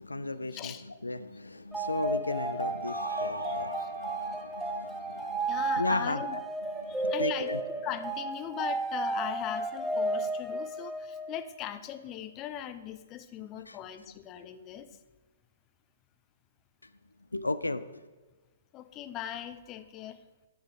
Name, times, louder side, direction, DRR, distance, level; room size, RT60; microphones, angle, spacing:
voice 1, 0.0-6.4 6.8-7.6 13.7-13.8 17.3-18.0, left 2 dB, 80° left, 13 dB, 0.4 m, -35 dB
voice 2, 0.5-0.8 3.4-3.9 5.5-6.4 6.9-7.5 7.8-14.9 18.7-20.2, left 11 dB, 25° left, 11 dB, 0.6 m, -39 dB
sound 1, 1.7-11.5, right 2 dB, 5° right, 0.8 m, -33 dB
sound 2, 2.9-6.0, right 1 dB, 90° right, 0.8 m, -42 dB
9.9 x 8.2 x 4.8 m, 1.3 s
figure-of-eight pair, 120°, 0 cm